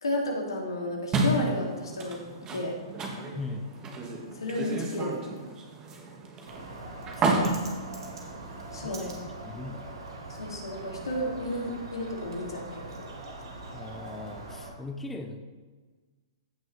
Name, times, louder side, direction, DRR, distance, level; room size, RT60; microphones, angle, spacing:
voice 1, 0.0-2.2 2.5-2.7 4.3-5.3 8.7-9.1 10.3-12.8, left 1 dB, 80° left, -1 dB, 2.4 m, -32 dB
sound 1, 1.1-8.9, right 2 dB, 25° right, 1.6 m, -32 dB
voice 2, 3.3-3.7 7.1-7.7 8.7-9.9 13.7-15.4, left 2 dB, 10° left, 4 dB, 0.7 m, -39 dB
Bird, 6.5-14.7, right 2 dB, 75° right, 2.1 m, -42 dB
15.0 x 6.1 x 3.2 m, 1.4 s
hypercardioid pair, 120°, 3 cm